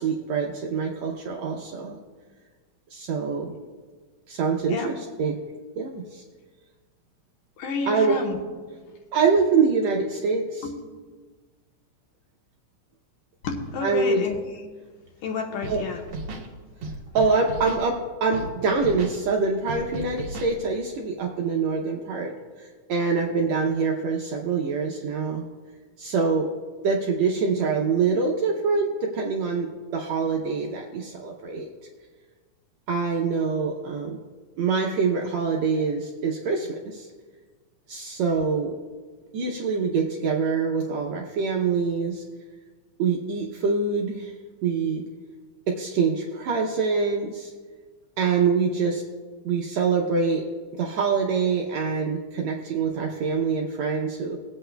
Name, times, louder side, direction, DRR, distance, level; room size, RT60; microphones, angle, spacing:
voice 1, 0.0-2.0 2.9-3.5 4.3-5.3 5.8-6.2 7.9-8.2 9.1-10.7 13.8-14.3 15.7-15.8 17.1-22.3 22.6-25.4 26.0-26.5 26.8-31.7 32.9-34.2 34.6-37.1 37.9-38.8 39.3-42.2 43.0-44.3 44.6-45.0 45.7-47.5 48.2-49.0 49.4-50.5 50.7-54.4, right 5 dB, 80° right, 0 dB, 1.6 m, -25 dB
voice 2, 7.6-8.4 10.6-10.7 13.4-14.4 15.2-16.0, left 4 dB, 75° left, 2 dB, 2.6 m, -30 dB
Scratching (performance technique), 15.6-15.8 16.1-16.5 16.8-17.8 18.3-18.5 18.8-19.2 19.7-20.5, right 2 dB, 60° right, 1.4 m, -35 dB
20.5 x 8.4 x 2.2 m, 1.4 s
omnidirectional pair, 3.9 m